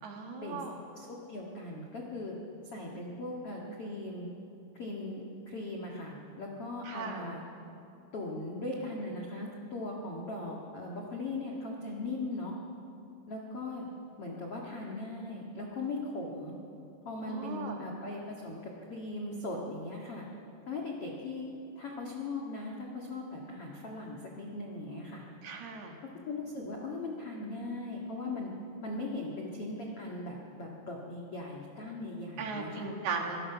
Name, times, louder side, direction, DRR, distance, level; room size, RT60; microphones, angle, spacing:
voice 1, 0.0-0.8 6.8-7.3 17.3-17.8 25.4-25.9 32.4-33.4, right 5 dB, 60° right, 2 dB, 3.3 m, -37 dB
voice 2, 0.9-2.3 2.7-4.3 4.7-7.4 8.1-12.5 13.3-13.9 14.2-16.6 17.0-20.2 20.7-21.4 21.7-25.3 26.2-28.5 28.8-32.9, left 2 dB, 75° left, -2 dB, 1.3 m, -39 dB
25.5 x 19.5 x 5.9 m, 2.8 s
omnidirectional pair, 5.9 m